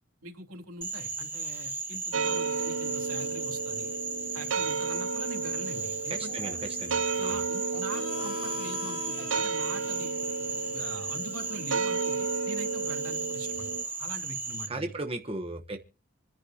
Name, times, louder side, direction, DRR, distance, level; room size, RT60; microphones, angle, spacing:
voice 1, 0.2-3.9 4.3-6.4 7.3-10.1 10.6-13.7 14.0-14.9, right 2 dB, 90° right, 2 dB, 3.1 m, -43 dB
Frog, 0.8-14.7, right 4 dB, 10° right, 1.3 m, -35 dB
sound 1, 2.1-13.8, right 4 dB, 60° right, 0.6 m, -33 dB
voice 2, 6.1-7.4 14.7-15.8, right 2 dB, 25° right, 4 dB, 1.2 m, -36 dB
Harmonica, 7.9-13.2, left 6 dB, 70° left, 6.5 m, -45 dB
27.5 x 10.5 x 2.9 m, 0.35 s
head